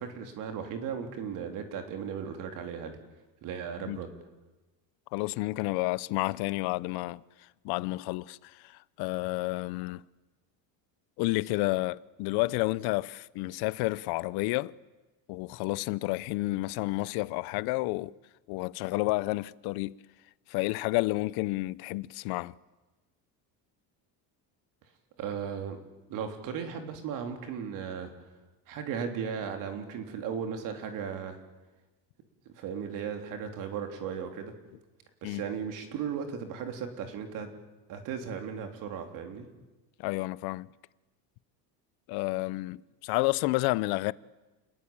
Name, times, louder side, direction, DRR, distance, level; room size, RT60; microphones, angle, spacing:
voice 1, 0.0-3.0 3.4-4.1 25.2-25.8 26.1-28.1 28.7-31.4 32.5-34.5 35.2-37.5 37.9-39.5, right 7 dB, 50° right, 3.6 m, -36 dB
voice 2, 5.1-7.2 7.6-10.0 11.2-14.7 15.3-18.1 18.5-20.0 20.5-22.5 35.2-35.4 40.0-40.7 42.1-44.1, left 21 dB, 65° left, 0.8 m, -30 dB
29.0 x 21.0 x 8.9 m
cardioid pair, 175°, 41 cm